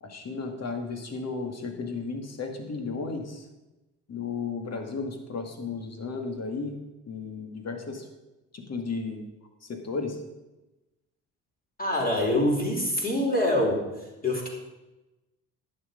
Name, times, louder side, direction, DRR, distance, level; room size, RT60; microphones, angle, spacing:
voice 1, 0.0-3.5 4.1-6.8 7.1-8.1 8.5-9.3 9.6-10.2, left 4 dB, 40° left, 4 dB, 2.1 m, -34 dB
voice 2, 11.8-14.0 14.2-14.5, left 1 dB, 20° left, -2 dB, 4.3 m, -25 dB
11.0 x 8.4 x 5.2 m, 1.0 s
hypercardioid pair, 50°, 39 cm